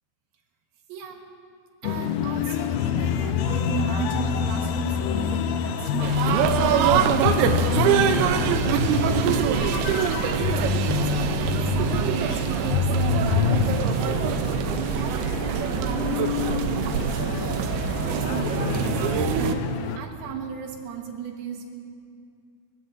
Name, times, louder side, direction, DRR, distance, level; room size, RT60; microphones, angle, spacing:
voice 1, 0.9-1.3 1.8-10.1 10.4-14.4 14.7-19.0 19.3-19.7 20.0-21.6, right 6 dB, 75° right, 2 dB, 3.1 m, -35 dB
sound 1, 1.8-20.0, left 8 dB, 80° left, 2.2 m, -27 dB
sound 2, 6.0-19.6, right 9 dB, 90° right, 2.7 m, -24 dB
28.0 x 15.5 x 2.6 m, 2.4 s
omnidirectional pair, 4.4 m